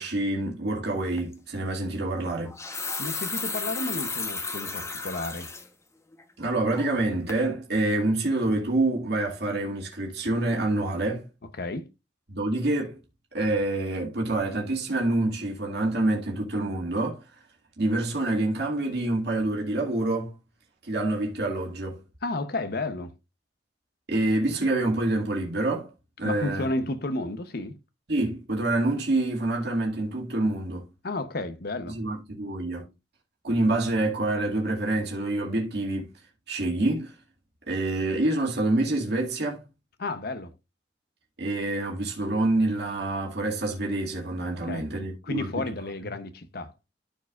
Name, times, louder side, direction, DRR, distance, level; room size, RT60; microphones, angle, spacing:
voice 1, 0.0-2.5 6.4-11.2 12.3-13.0 13.3-17.2 17.8-20.3 20.8-22.0 24.1-25.9 26.2-26.9 28.1-30.8 31.9-32.9 33.4-36.1 36.5-37.1 37.7-39.6 41.4-45.6, right 2 dB, 65° right, 2.3 m, -27 dB
sound 1, 1.2-1.3 2.3-5.7 6.1-6.2 6.7-7.0 7.3-7.4, left 4 dB, 15° left, 1.0 m, -33 dB
voice 2, 3.0-5.5 11.6-11.9 22.2-23.1 26.2-27.8 31.0-32.0 40.0-40.5 44.5-44.9 45.2-46.7, left 2 dB, 60° left, 0.8 m, -32 dB
13.5 x 4.7 x 2.4 m
head